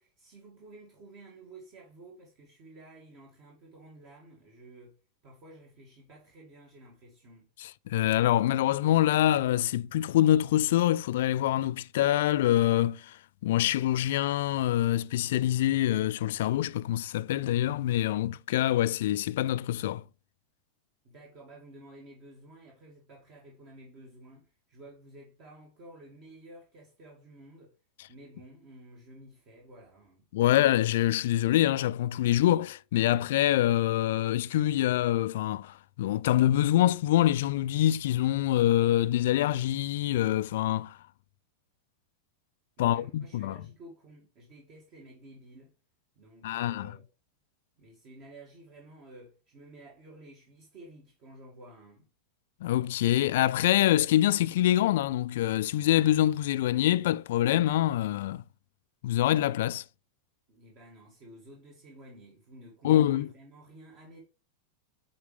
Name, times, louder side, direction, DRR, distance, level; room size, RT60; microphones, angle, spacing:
voice 1, 0.0-5.0 5.2-7.5 21.0-27.7 28.1-30.2 42.8-45.7 46.2-47.1 47.8-52.1 60.5-64.2, right 1 dB, 40° right, 2.1 m, -52 dB
voice 2, 7.6-13.2 13.4-20.0 30.3-41.0 42.8-43.6 46.4-46.9 52.6-58.4 59.0-59.8 62.8-63.3, left 13 dB, 55° left, 0.3 m, -25 dB
9.1 x 4.5 x 3.3 m
figure-of-eight pair, 90°, 0 cm